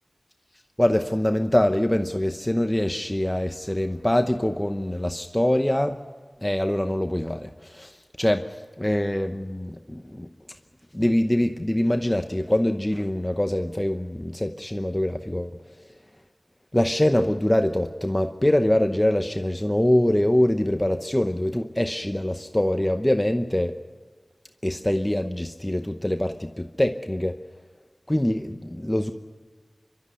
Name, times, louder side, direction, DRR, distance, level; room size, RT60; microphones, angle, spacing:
voice 1, 0.8-6.0 6.4-10.3 10.9-15.9 16.7-23.8 24.6-27.4 28.1-29.1, left 1 dB, 20° left, 6 dB, 0.9 m, -24 dB
26.0 x 12.5 x 9.8 m, 1.5 s
wide cardioid pair, 55°, 0 cm